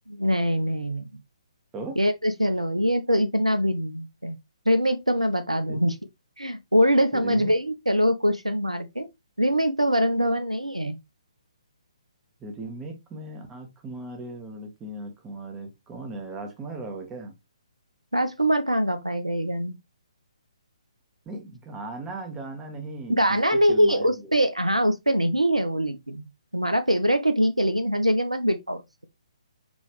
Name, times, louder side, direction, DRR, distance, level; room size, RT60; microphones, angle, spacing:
voice 1, 0.1-1.1 2.0-4.4 4.7-6.0 6.4-9.1 9.4-11.0 18.1-19.8 23.1-26.3 26.5-28.8, equal, 90° right, 0.6 m, -23 dB
voice 2, 7.1-7.5 12.4-17.3 21.2-24.3, right 2 dB, 15° right, 1.3 m, -37 dB
5.3 x 3.1 x 3.1 m
figure-of-eight pair, 135°, 3 cm